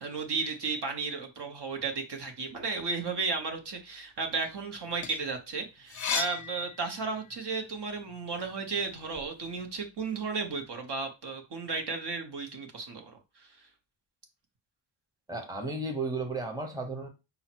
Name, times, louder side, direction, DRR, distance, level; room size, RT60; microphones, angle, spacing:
voice 1, 0.0-13.1 13.4-13.6, right 4 dB, 55° right, 0.9 m, -34 dB
sound 1, 4.7-7.4 7.9-9.3, left 6 dB, 40° left, 0.5 m, -37 dB
voice 2, 15.3-17.1, right 2 dB, 10° right, 0.9 m, -34 dB
5.4 x 2.0 x 4.4 m
wide cardioid pair, 115°, 49 cm